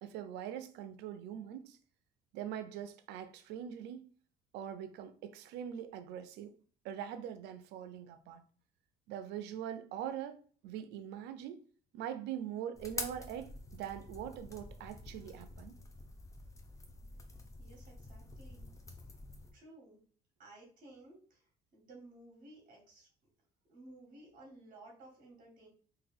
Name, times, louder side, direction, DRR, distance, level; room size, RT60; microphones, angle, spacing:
voice 1, 0.0-1.8 2.3-4.1 4.5-6.5 6.8-8.4 9.1-11.6 11.9-15.7, right 9 dB, 85° right, 0.5 m, -43 dB
sound 1, 12.7-19.5, left 2 dB, 20° left, 0.7 m, -47 dB
voice 2, 17.6-18.7 19.5-20.0 20.4-21.4 21.7-23.1 23.7-25.7, right 2 dB, 55° right, 1.8 m, -56 dB
3.7 x 2.6 x 3.5 m
cardioid pair, 110°, 17 cm